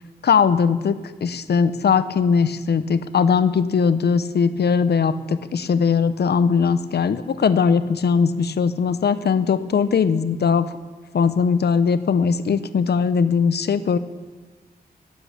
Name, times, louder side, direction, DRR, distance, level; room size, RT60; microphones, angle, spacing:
voice 1, 0.2-10.7 11.1-14.0, left 6 dB, 80° left, 12 dB, 0.8 m, -20 dB
11.5 x 10.5 x 8.6 m, 1.3 s
wide cardioid pair, 105°, 17 cm